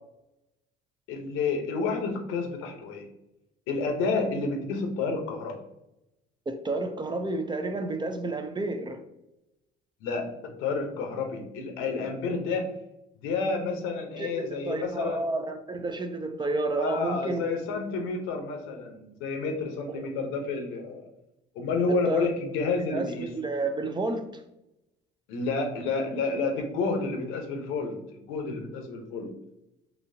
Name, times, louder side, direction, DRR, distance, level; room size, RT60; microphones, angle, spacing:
voice 1, 1.1-3.0 3.7-5.6 10.0-10.3 10.6-12.7 13.2-15.2 16.8-21.1 21.5-23.3 25.3-28.0 28.3-29.3, left 4 dB, 85° left, 3 dB, 0.8 m, -30 dB
voice 2, 6.5-9.0 14.2-14.3 14.7-17.4 19.9-20.1 21.9-22.3 22.9-24.3, right 2 dB, 20° right, 6 dB, 0.5 m, -30 dB
4.1 x 2.8 x 2.7 m, 0.86 s
supercardioid pair, 75°, 21 cm